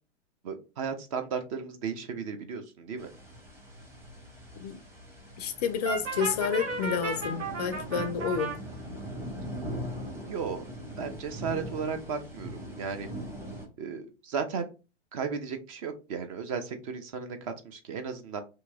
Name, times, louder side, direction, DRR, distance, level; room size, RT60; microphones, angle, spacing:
voice 1, 0.4-3.1 10.3-10.6 11.0-13.1 13.8-14.7 15.1-18.4, right 6 dB, 30° right, 0.4 m, -35 dB
sound 1, 3.0-13.7, equal, 5° right, 0.8 m, -41 dB
voice 2, 5.4-8.5, left 7 dB, 35° left, 0.4 m, -30 dB
Brass instrument, 5.8-8.6, right 3 dB, 85° right, 1.3 m, -34 dB
2.9 x 2.6 x 3.3 m
hypercardioid pair, 115°, 36 cm